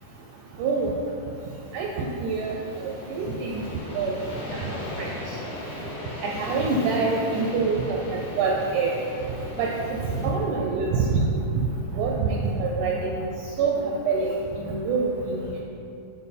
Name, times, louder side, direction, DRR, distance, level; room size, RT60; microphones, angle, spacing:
voice 1, 0.6-0.9 1.7-2.5 2.8-3.6 4.0-4.2 4.5-4.6 5.0-5.1 6.2-8.9 9.6-9.7 10.2-11.0 12.0-13.3 13.6-13.8 14.1-14.3 14.6-15.6, right 4 dB, 85° right, -1 dB, 1.8 m, -26 dB
sound 1, 2.3-10.3, left 1 dB, 85° left, 3.2 m, -37 dB
7.4 x 4.6 x 4.2 m, 2.8 s
omnidirectional pair, 4.0 m